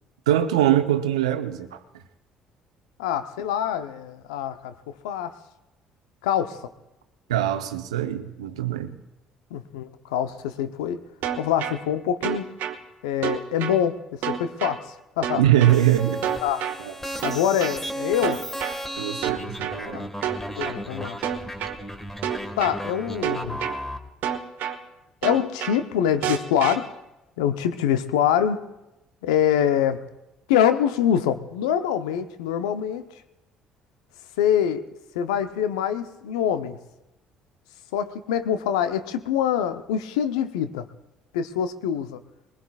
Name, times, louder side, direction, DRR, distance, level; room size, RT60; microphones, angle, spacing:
voice 1, 0.3-1.8 7.3-9.0 15.4-16.2 16.8-16.9 19.0-20.0, right 12 dB, 90° right, 9 dB, 0.8 m, -22 dB
voice 2, 3.0-4.7 5.0-5.3 6.2-6.6 9.5-11.0 11.4-12.5 13.0-15.4 16.4-16.7 17.2-18.4 19.9-20.1 20.6-21.2 22.6-23.6 25.2-26.9 27.4-28.6 29.2-30.0 30.5-33.0 34.4-34.9 35.1-36.8 37.9-40.9 41.3-42.2, left 9 dB, 85° left, 10 dB, 0.7 m, -24 dB
sound 1, 11.2-11.8 12.2-12.8 13.2-13.8 14.2-14.8 15.2-15.8 16.2-16.8 17.2-17.8 18.2-18.8 19.2-19.8 20.2-20.8 21.2-21.8 22.2-22.8 23.2-23.8 24.2-24.8 25.2-25.8 26.2-26.8, right 10 dB, 65° right, 1.1 m, -28 dB
sound 2, 15.7-24.0, equal, 10° left, 1.6 m, -35 dB
22.0 x 20.0 x 2.4 m, 0.95 s
hypercardioid pair, 60°, 3 cm